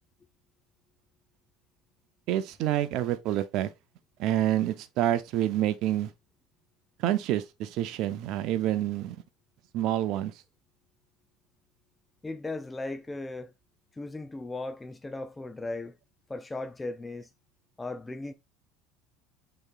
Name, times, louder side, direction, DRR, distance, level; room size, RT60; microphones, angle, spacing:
voice 1, 2.3-3.7 4.2-6.1 7.0-9.2 9.7-10.3, right 12 dB, 60° right, 0.5 m, -27 dB
voice 2, 12.2-13.5 13.9-16.0 16.3-17.3 17.8-18.3, left 2 dB, 15° left, 0.4 m, -37 dB
6.4 x 3.1 x 2.4 m
hypercardioid pair, 75°, 0 cm